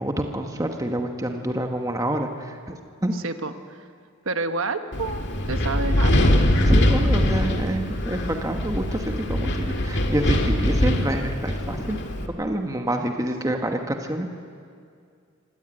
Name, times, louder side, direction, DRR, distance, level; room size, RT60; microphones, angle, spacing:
voice 1, 0.0-2.7 3.0-3.1 6.7-12.0 12.4-14.3, right 1 dB, 15° right, 4 dB, 1.3 m, -27 dB
voice 2, 3.1-3.8 4.2-6.4, right 3 dB, 75° right, 8 dB, 1.3 m, -29 dB
Wind, 4.9-12.3, left 1 dB, 55° left, 1.9 m, -22 dB
25.0 x 17.5 x 8.9 m, 2.3 s
head